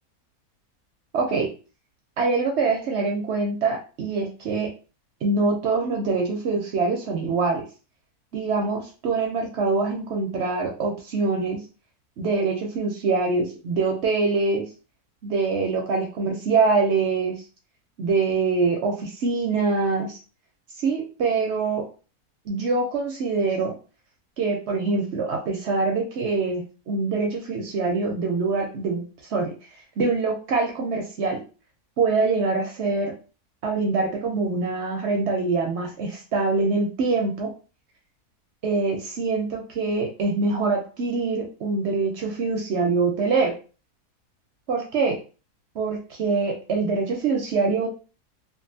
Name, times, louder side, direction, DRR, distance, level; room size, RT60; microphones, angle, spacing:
voice 1, 1.1-1.5 2.2-4.7 5.2-7.7 8.3-11.6 12.2-14.6 15.2-17.4 18.0-20.2 20.8-21.9 22.5-23.7 24.4-29.5 30.0-31.4 32.0-33.1 33.6-37.5 38.6-43.6 44.7-45.2 45.7-47.9, right 4 dB, 65° right, 2 dB, 0.7 m, -24 dB
2.6 x 2.5 x 2.6 m, 0.35 s
omnidirectional pair, 1.7 m